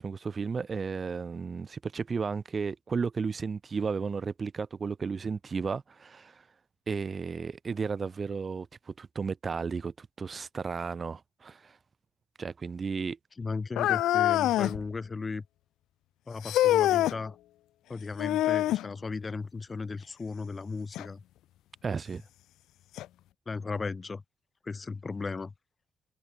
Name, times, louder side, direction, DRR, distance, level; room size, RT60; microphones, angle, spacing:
voice 1, 0.0-6.4 6.9-11.8 12.4-13.2 21.8-22.2, right 5 dB, 40° right, 0.8 m, -33 dB
voice 2, 13.4-15.4 16.3-17.4 17.9-21.2 23.5-24.2 24.6-25.5, left 4 dB, 30° left, 1.0 m, -36 dB
sound 1, 13.8-14.8 16.4-17.2 18.2-18.9 20.9-21.1 21.9-22.0 23.0-23.1, left 14 dB, 85° left, 0.4 m, -25 dB
cardioid pair, 90°, 0 cm